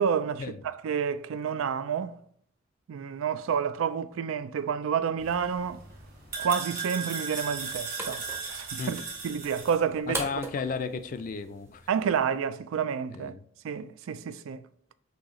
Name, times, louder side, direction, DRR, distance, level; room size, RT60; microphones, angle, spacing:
voice 1, 0.0-2.2 2.9-5.8 6.4-8.2 8.5-10.2 11.9-13.3 13.6-14.6, right 7 dB, 80° right, 0.3 m, -29 dB
sound 1, 5.2-9.8, right 5 dB, 45° right, 1.8 m, -37 dB
sound 2, 7.3-12.3, right 1 dB, 10° right, 0.6 m, -42 dB
voice 2, 10.1-11.9 13.1-13.4, left 5 dB, 40° left, 0.3 m, -34 dB
6.3 x 2.7 x 3.0 m
head